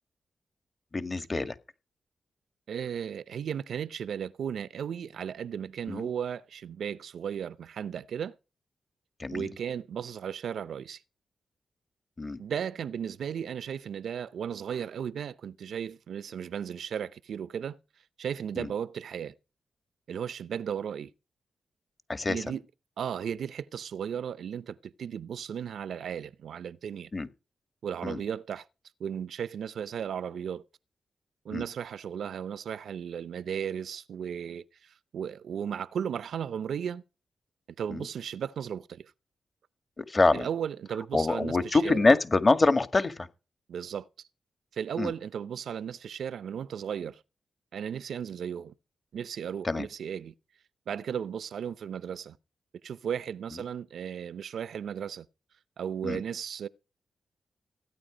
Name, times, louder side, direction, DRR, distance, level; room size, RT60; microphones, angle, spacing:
voice 1, 0.9-1.6 5.9-6.1 9.2-9.5 12.2-12.4 18.6-18.7 22.1-22.5 27.1-27.3 28.0-28.2 31.5-31.7 37.9-38.1 40.0-40.5 41.1-43.3 45.0-45.1 49.6-49.9 56.0-56.2, left 3 dB, 40° left, 1.8 m, -25 dB
voice 2, 2.7-8.4 9.3-11.0 12.4-17.8 18.2-19.3 20.1-21.1 22.3-22.6 23.0-27.1 27.8-28.7 29.0-30.6 31.4-37.0 37.8-39.1 40.3-42.0 43.7-44.1 44.7-47.2 47.7-48.7 49.1-50.3 50.9-52.4 52.8-55.3 55.8-56.7, right 8 dB, 75° right, 0.7 m, -35 dB
16.0 x 9.5 x 5.1 m
supercardioid pair, 45°, 0 cm